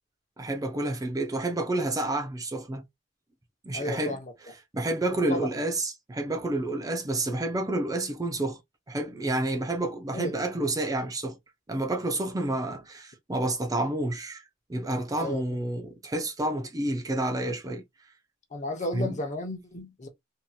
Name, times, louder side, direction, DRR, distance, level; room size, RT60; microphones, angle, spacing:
voice 1, 0.4-2.8 3.6-4.2 4.7-8.6 8.9-11.4 11.7-14.4 14.7-17.8 18.9-19.2, right 2 dB, 20° right, 0.4 m, -29 dB
voice 2, 3.7-4.3 5.3-5.5 10.1-10.3 15.2-15.4 18.5-20.1, left 1 dB, 40° left, 0.8 m, -33 dB
2.9 x 2.7 x 2.2 m
head